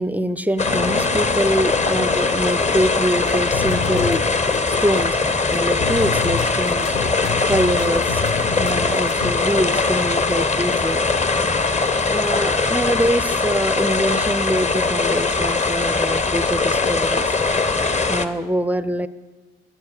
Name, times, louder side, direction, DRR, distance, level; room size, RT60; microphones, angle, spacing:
voice 1, 0.0-4.2 4.7-5.2 5.5-8.2 8.6-11.0 12.1-17.4 18.1-19.1, equal, 5° right, 14 dB, 0.5 m, -24 dB
sound 1, 0.6-18.3, left 3 dB, 20° left, 0.8 m, -21 dB
sound 2, 0.7-15.3, left 3 dB, 80° left, 1.7 m, -38 dB
sound 3, 3.2-9.3, left 6 dB, 55° left, 1.0 m, -30 dB
19.0 x 7.0 x 4.9 m, 1.3 s
hypercardioid pair, 55°, 31 cm